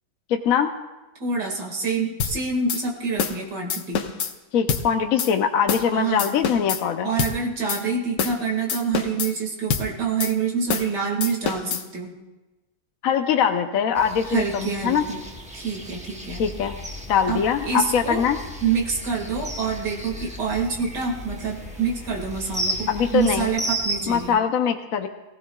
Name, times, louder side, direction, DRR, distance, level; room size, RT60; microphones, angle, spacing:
voice 1, 0.3-0.7 4.5-7.1 13.0-15.0 16.4-16.8 17.1-18.4 22.9-23.5 24.1-25.1, left 7 dB, 65° left, 6 dB, 1.0 m, -22 dB
voice 2, 1.2-4.1 5.9-6.3 7.0-12.1 14.2-15.2 15.5-16.4 17.3-18.2 18.6-24.4, right 5 dB, 80° right, 0 dB, 2.7 m, -26 dB
sound 1, 2.2-2.4 2.7-2.8 3.2-3.4 3.7-4.3 4.7-4.9 5.2-5.3 5.7-5.9 6.2-6.8 7.2-7.4 7.7-7.8 8.2-8.4 8.7-9.3 9.7-9.9 10.2-10.3 10.7-10.9 11.2-11.8, left 6 dB, 90° left, 1.5 m, -26 dB
sound 2, 13.9-24.3, right 2 dB, 5° right, 0.8 m, -35 dB
sound 3, 16.3-23.4, left 4 dB, 30° left, 5.6 m, -41 dB
22.5 x 16.0 x 2.3 m, 1.1 s
omnidirectional pair, 1.8 m